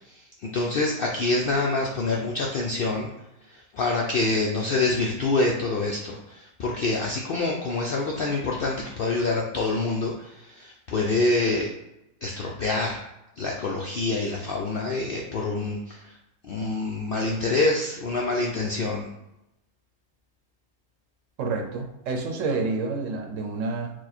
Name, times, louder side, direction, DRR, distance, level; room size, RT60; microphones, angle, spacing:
voice 1, 0.1-3.1 3.5-11.7 12.2-13.1 13.4-16.2 16.4-19.1, left 3 dB, 65° left, -1 dB, 0.5 m, -26 dB
voice 2, 21.4-23.9, right 3 dB, 65° right, 3 dB, 1.0 m, -28 dB
4.7 x 2.2 x 4.2 m, 0.88 s
omnidirectional pair, 1.5 m